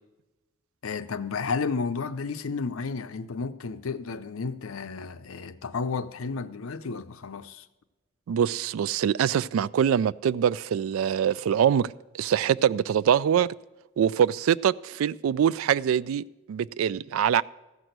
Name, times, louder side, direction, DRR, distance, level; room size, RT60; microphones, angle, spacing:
voice 1, 0.8-7.7, left 4 dB, 80° left, 0.6 m, -32 dB
voice 2, 8.3-13.5 14.0-17.4, right 8 dB, 80° right, 0.3 m, -24 dB
14.5 x 6.1 x 8.0 m
head